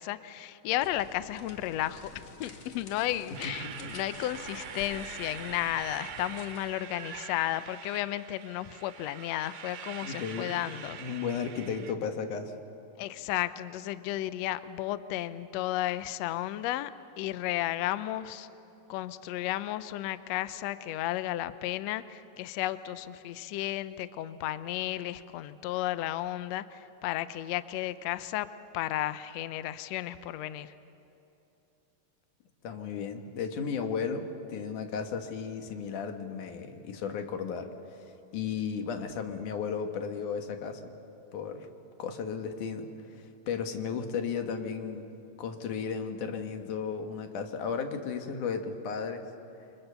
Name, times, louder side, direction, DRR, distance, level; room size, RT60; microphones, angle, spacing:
voice 1, 0.0-11.0 13.0-16.9 17.2-18.5 18.9-28.5 28.7-30.7, left 14 dB, 85° left, 13 dB, 1.5 m, -33 dB
sound 1, 0.7-6.8, left 3 dB, 45° left, 2.5 m, -49 dB
sound 2, 3.3-11.9, right 8 dB, 85° right, 3.0 m, -44 dB
voice 2, 3.4-3.9 10.0-10.5 11.0-12.5 32.6-40.9 41.3-41.7 42.0-45.1 45.4-49.3, left 6 dB, 70° left, 6 dB, 2.9 m, -35 dB
29.0 x 24.5 x 6.9 m, 2.9 s
omnidirectional pair, 3.9 m